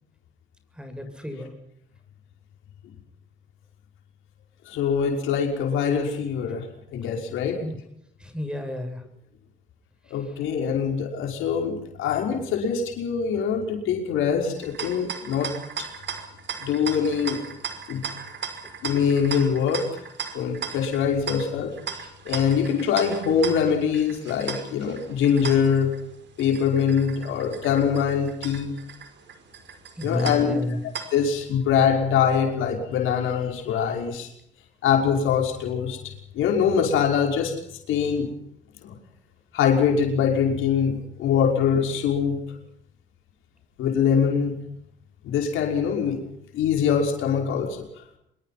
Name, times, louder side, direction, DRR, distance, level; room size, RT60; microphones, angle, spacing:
voice 1, 0.8-1.5 7.6-7.8 8.2-9.0 30.0-30.8, left 1 dB, 5° right, 7 dB, 7.6 m, -31 dB
voice 2, 4.7-6.6 6.9-7.7 10.1-15.5 15.8-15.9 16.6-17.4 17.9-18.0 18.8-19.9 20.3-25.9 26.4-28.7 30.0-30.6 30.8-34.3 34.8-36.0 36.3-37.5 37.9-38.3 38.8-39.0 39.5-42.4 43.8-44.6 45.2-46.2 46.5-47.8, left 7 dB, 90° left, 3 dB, 5.6 m, -23 dB
sound 1, 14.5-31.4, right 7 dB, 65° right, 5.2 m, -37 dB
25.5 x 23.0 x 6.0 m, 0.75 s
cardioid pair, 90°, 20 cm